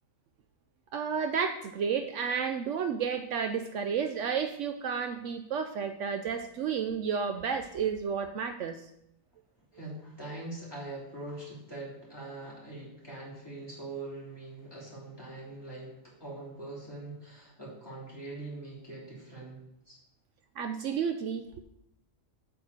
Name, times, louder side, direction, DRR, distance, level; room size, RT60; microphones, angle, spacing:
voice 1, 0.9-8.8 20.6-21.6, right 6 dB, 70° right, 8 dB, 0.9 m, -31 dB
voice 2, 9.7-20.0, right 2 dB, 20° left, -6 dB, 3.0 m, -43 dB
8.4 x 4.5 x 6.5 m, 0.79 s
omnidirectional pair, 1.4 m